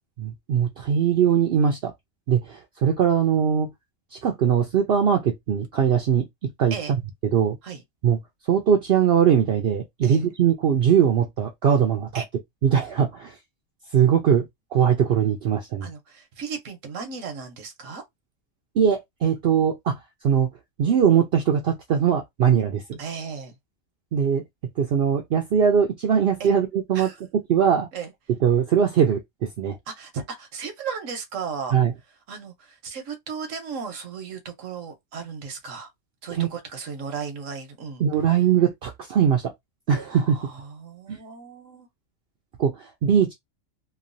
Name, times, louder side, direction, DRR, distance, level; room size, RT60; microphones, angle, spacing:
voice 1, 0.2-1.9 2.3-3.7 4.1-6.8 7.3-7.6 8.0-8.2 8.5-12.2 12.6-13.4 13.9-14.5 14.7-15.9 18.8-20.0 20.2-20.5 20.8-23.0 24.1-24.4 24.8-27.1 27.5-27.9 28.4-29.2 29.6-29.8 31.7-31.9 36.4-36.5 38.0-39.5 39.9-40.4 41.1-41.2 42.6-43.3, right 8 dB, 60° right, 0.7 m, -21 dB
voice 2, 15.8-18.0 23.0-23.5 26.4-26.5 26.9-27.2 27.9-28.1 29.9-31.8 32.3-35.9 36.2-38.0 40.0-41.9, right 6 dB, 80° right, 1.2 m, -35 dB
3.0 x 2.3 x 2.5 m
omnidirectional pair, 1.3 m